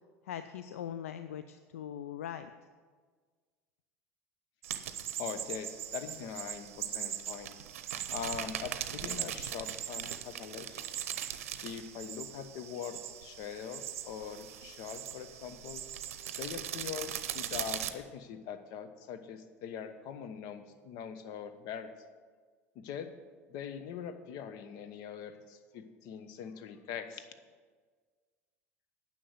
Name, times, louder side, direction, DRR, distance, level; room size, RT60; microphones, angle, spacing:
voice 1, 0.2-2.5, left 9 dB, 75° left, 10 dB, 0.4 m, -41 dB
sound 1, 4.6-17.9, right 10 dB, 75° right, 0.6 m, -40 dB
voice 2, 5.2-7.5 8.1-10.7 11.6-15.8 16.4-21.9 22.7-23.1 23.5-27.3, left 7 dB, 60° left, 10 dB, 0.9 m, -42 dB
10.0 x 6.3 x 7.8 m, 1.5 s
hypercardioid pair, 75°, 8 cm